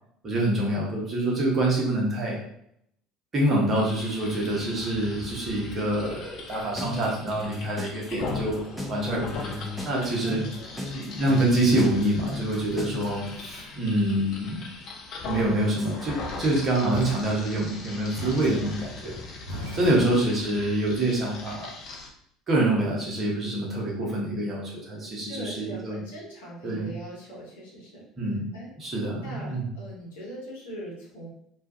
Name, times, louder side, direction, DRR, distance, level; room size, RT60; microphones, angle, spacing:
voice 1, 0.2-2.4 3.3-8.6 8.9-9.5 9.8-10.4 10.9-14.7 15.2-19.1 19.7-21.7 22.5-26.0 26.6-26.9 28.2-28.4 28.8-29.7, right 1 dB, 30° right, -3 dB, 0.9 m, -26 dB
sound 1, 3.7-22.1, left 3 dB, 45° left, 0.5 m, -40 dB
sound 2, 6.8-13.3, left 2 dB, 5° right, 0.5 m, -35 dB
voice 2, 9.0-9.5 10.2-10.7 25.2-28.0 28.5-28.7 29.2-31.3, right 1 dB, 70° left, -5 dB, 0.9 m, -41 dB
sound 3, 16.9-20.4, equal, 80° right, 0.7 m, -39 dB
2.4 x 2.3 x 2.5 m, 0.74 s
figure-of-eight pair, 60°, 0 cm